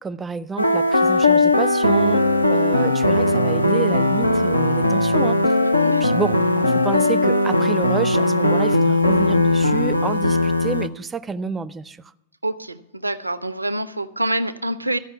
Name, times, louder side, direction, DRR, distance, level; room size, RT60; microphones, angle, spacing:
voice 1, 0.0-2.2 2.5-5.4 6.0-12.0, right 4 dB, 15° right, 0.4 m, -29 dB
sound 1, 0.6-10.9, left 1 dB, 85° left, 0.5 m, -18 dB
voice 2, 5.6-6.2 12.4-15.0, right 1 dB, 85° right, 0.5 m, -26 dB
13.0 x 5.4 x 8.2 m
figure-of-eight pair, 90°, 0 cm